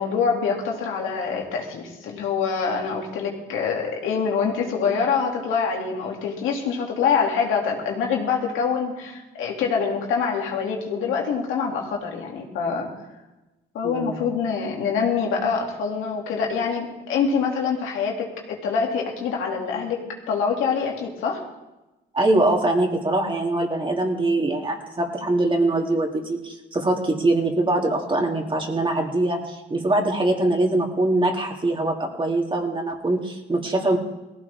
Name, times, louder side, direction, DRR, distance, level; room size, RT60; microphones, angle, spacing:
voice 1, 0.0-12.9 13.7-20.0 20.3-21.4, left 6 dB, 90° left, 0 dB, 2.8 m, -25 dB
voice 2, 13.8-14.2 22.1-34.0, right 2 dB, 25° right, 1 dB, 3.1 m, -23 dB
18.5 x 15.5 x 3.7 m, 1.0 s
cardioid pair, 90°, 20 cm